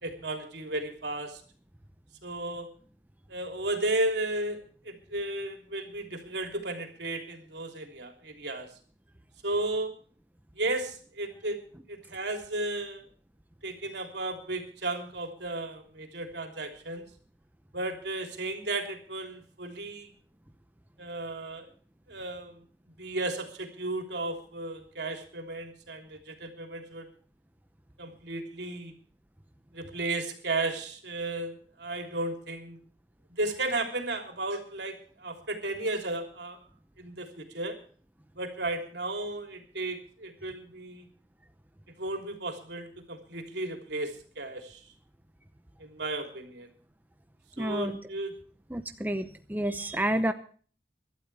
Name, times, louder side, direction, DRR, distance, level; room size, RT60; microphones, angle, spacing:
voice 1, 0.0-1.4 2.2-2.7 3.3-4.6 4.8-8.7 9.4-9.9 10.5-11.6 11.9-13.1 13.6-17.1 17.7-20.1 21.0-21.7 22.1-22.6 23.0-27.1 28.0-28.9 29.7-32.8 33.3-36.6 37.0-37.8 38.3-41.1 42.0-44.8 45.8-46.7 47.6-48.3, right 2 dB, 75° right, 4 dB, 3.3 m, -34 dB
voice 2, 47.6-48.0 48.7-50.3, right 1 dB, 10° right, 8 dB, 0.8 m, -29 dB
24.5 x 12.5 x 3.4 m, 0.42 s
head